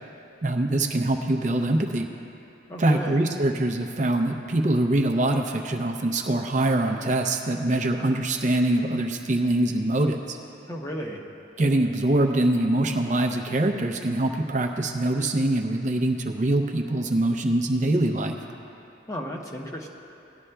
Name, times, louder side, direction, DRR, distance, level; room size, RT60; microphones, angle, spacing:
voice 1, 0.4-2.1 2.8-10.4 11.6-18.4, right 1 dB, 40° right, 3 dB, 0.5 m, -24 dB
voice 2, 2.7-3.2 10.7-11.2 19.1-19.9, equal, 15° left, 0 dB, 0.7 m, -34 dB
18.0 x 11.0 x 2.3 m, 2.9 s
head